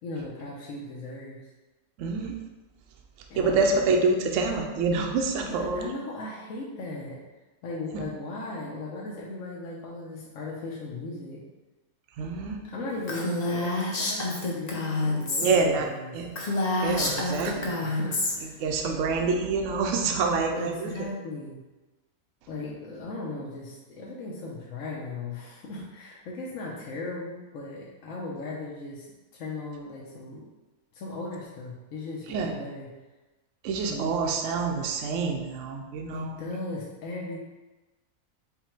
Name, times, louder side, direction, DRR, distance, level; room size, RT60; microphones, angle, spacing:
voice 1, 0.0-1.4 3.3-3.7 5.4-7.2 7.6-11.4 12.6-16.2 17.0-17.3 17.8-18.6 20.6-21.6 22.5-29.1 29.3-30.4 30.9-32.9 33.9-34.1 36.1-37.4, left 2 dB, 65° left, -4 dB, 1.1 m, -37 dB
voice 2, 2.0-2.4 3.4-5.9 7.9-8.0 12.2-12.6 15.4-15.9 16.1-16.3 16.8-17.7 18.6-20.9 32.3-32.5 33.6-36.5, right 4 dB, 70° right, 2 dB, 0.8 m, -26 dB
Female speech woman speaking, 13.1-15.6 15.9-16.0 16.3-18.3, left 2 dB, 45° left, 0.5 m, -28 dB
5.6 x 2.2 x 4.3 m, 1.1 s
omnidirectional pair, 1.6 m